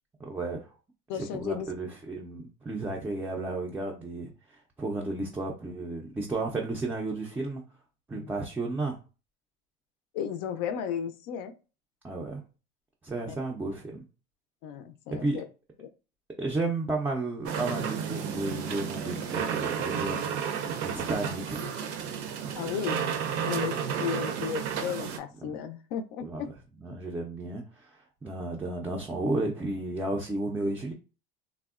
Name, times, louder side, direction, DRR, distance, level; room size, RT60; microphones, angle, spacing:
voice 1, 0.2-0.7 1.1-7.6 8.1-9.0 12.0-12.4 13.0-14.0 15.1-15.4 16.4-21.6 25.4-25.6 26.2-26.4 26.8-30.9, right 2 dB, 10° right, -1 dB, 0.3 m, -33 dB
voice 2, 1.1-1.7 8.1-8.3 10.1-11.5 13.3-13.4 14.6-15.4 15.8-15.9 22.5-23.0 23.4-26.5, left 8 dB, 65° left, 8 dB, 0.4 m, -34 dB
sound 1, 17.5-25.2, right 7 dB, 60° right, 0.5 m, -32 dB
3.4 x 2.0 x 2.3 m, 0.33 s
cardioid pair, 140°, 19 cm